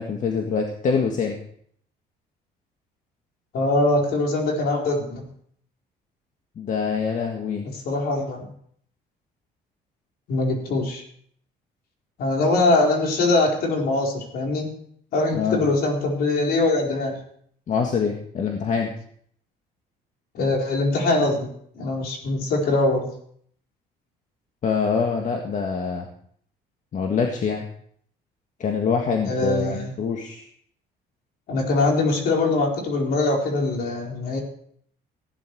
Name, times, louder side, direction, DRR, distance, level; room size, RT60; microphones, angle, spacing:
voice 1, 0.0-1.4 6.6-7.6 15.3-15.6 17.7-18.9 24.6-26.1 26.9-27.6 28.6-30.5, left 5 dB, 50° left, 2 dB, 1.8 m, -25 dB
voice 2, 3.5-5.3 7.6-8.5 10.3-11.0 12.2-14.7 15.1-17.2 20.3-23.1 29.3-29.9 31.5-34.4, left 2 dB, 65° left, 0 dB, 4.3 m, -22 dB
15.5 x 10.5 x 4.7 m, 0.63 s
cardioid pair, 110°, 17 cm